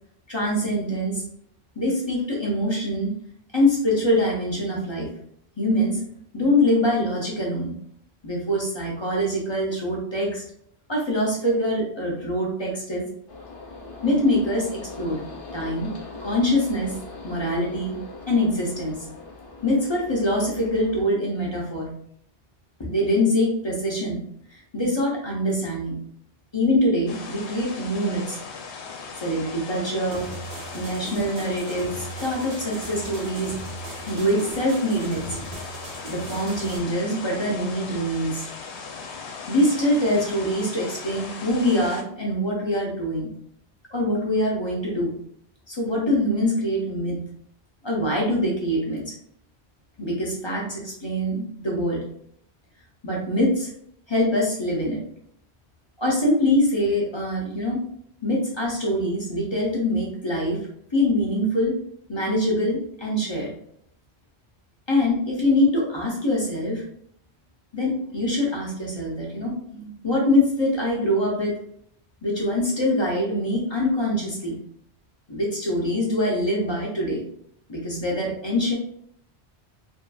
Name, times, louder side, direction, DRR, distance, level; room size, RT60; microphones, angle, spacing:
voice 1, 0.3-1.2 1.8-3.1 3.5-5.1 5.6-7.8 8.2-10.4 10.9-13.0 14.0-15.2 15.5-15.9 16.2-17.0 17.2-18.0 18.3-19.1 19.6-21.9 22.8-24.2 24.5-26.0 26.5-28.4 29.2-30.3 30.7-33.6 34.1-35.4 36.1-38.5 39.5-43.3 43.9-45.1 45.7-47.2 47.8-49.1 50.0-52.0 53.0-53.7 54.1-55.0 56.0-57.9 58.2-60.6 60.9-61.8 62.1-63.5 64.9-66.9 67.7-71.6 72.2-74.6 75.3-77.2 77.7-78.7, left 1 dB, 30° left, -3 dB, 0.6 m, -24 dB
sound 1, 13.3-21.0, left 3 dB, 60° left, 0.9 m, -40 dB
sound 2, 27.1-42.0, left 5 dB, 90° left, 0.9 m, -38 dB
sound 3, 30.1-36.8, right 2 dB, 50° right, 0.7 m, -39 dB
2.6 x 2.5 x 2.3 m, 0.67 s
omnidirectional pair, 1.1 m